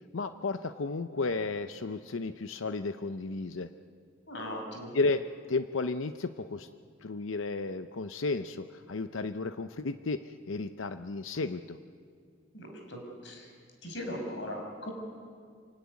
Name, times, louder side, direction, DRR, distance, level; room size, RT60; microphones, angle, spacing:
voice 1, 0.1-3.7 4.9-5.2 5.5-6.7 7.0-11.8, left 3 dB, 80° left, 10 dB, 0.7 m, -33 dB
voice 2, 4.3-4.9 12.5-13.5 13.8-14.9, equal, 65° left, 2 dB, 5.8 m, -39 dB
27.5 x 17.5 x 9.6 m, 2.1 s
head